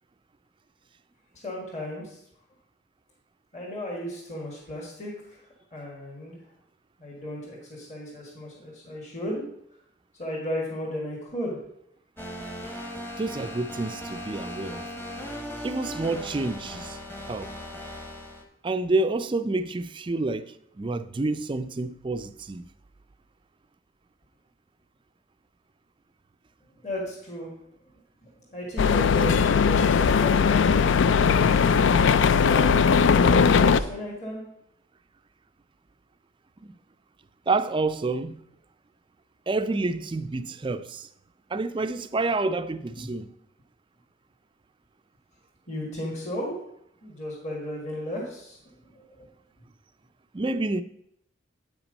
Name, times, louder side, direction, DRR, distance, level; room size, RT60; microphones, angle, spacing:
voice 1, 1.3-2.2 3.5-6.4 7.0-9.4 10.2-11.6 26.8-27.5 28.2-30.9 31.8-34.4 42.9-43.1 45.7-46.6 47.0-48.6 48.8-49.3, equal, 35° left, 2.0 m, -35 dB
sound 1, 12.2-18.4, equal, 10° left, 1.0 m, -38 dB
voice 2, 13.2-14.9 15.6-17.0 17.3-17.5 18.6-22.7 36.6-36.8 37.5-38.4 39.5-41.1 41.5-43.3 50.3-50.8, right 3 dB, 25° right, 0.4 m, -28 dB
sound 2, 28.8-33.8, left 6 dB, 70° left, 0.4 m, -19 dB
8.9 x 5.9 x 5.3 m
head